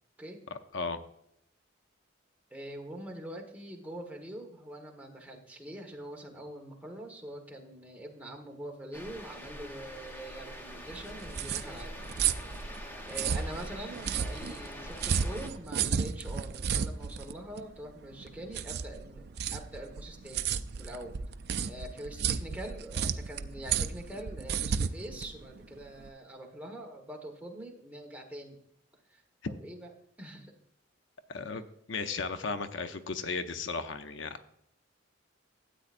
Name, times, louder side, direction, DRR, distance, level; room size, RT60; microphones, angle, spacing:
voice 1, 0.5-1.0 31.3-31.6 31.9-34.4, left 4 dB, 70° left, 9 dB, 0.7 m, -35 dB
voice 2, 2.5-11.9 13.1-21.2 21.7-28.6 29.1-29.9 30.2-30.5 31.5-31.7, right 1 dB, 10° right, 0 dB, 1.4 m, -44 dB
sound 1, 8.9-15.5, equal, 10° left, 0.9 m, -44 dB
sound 2, 10.9-26.1, right 7 dB, 55° right, 0.4 m, -33 dB
13.0 x 8.7 x 2.5 m, 0.73 s
head